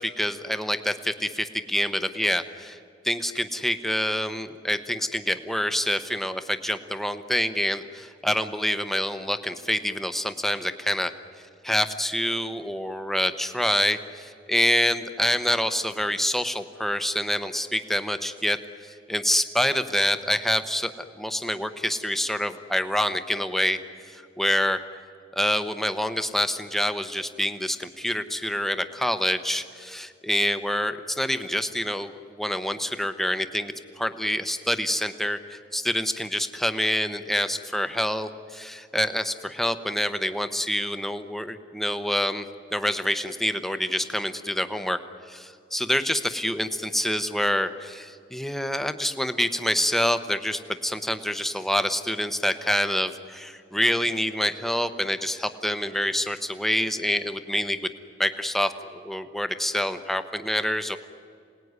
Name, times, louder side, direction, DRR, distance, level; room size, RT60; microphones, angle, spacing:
voice 1, 0.0-2.8 3.0-11.1 11.6-23.8 24.1-24.8 25.4-42.4 42.7-45.0 45.3-57.9 58.2-61.0, equal, ahead, 9 dB, 0.9 m, -26 dB
27.0 x 18.5 x 9.6 m, 2.3 s
head